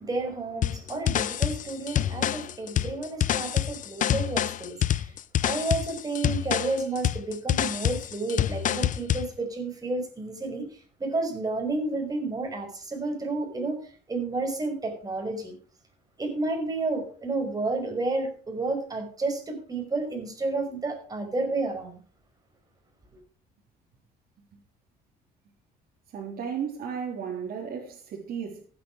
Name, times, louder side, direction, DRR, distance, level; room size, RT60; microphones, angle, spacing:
voice 1, 0.0-5.1 5.4-10.6 11.0-13.8 14.1-15.5 16.2-22.0, right 3 dB, 20° right, 5.6 m, -31 dB
sound 1, 0.6-9.3, left 11 dB, 50° left, 0.7 m, -27 dB
voice 2, 26.1-28.7, right 7 dB, 60° right, 4.0 m, -34 dB
15.5 x 9.5 x 4.9 m
cardioid pair, 110°, 17 cm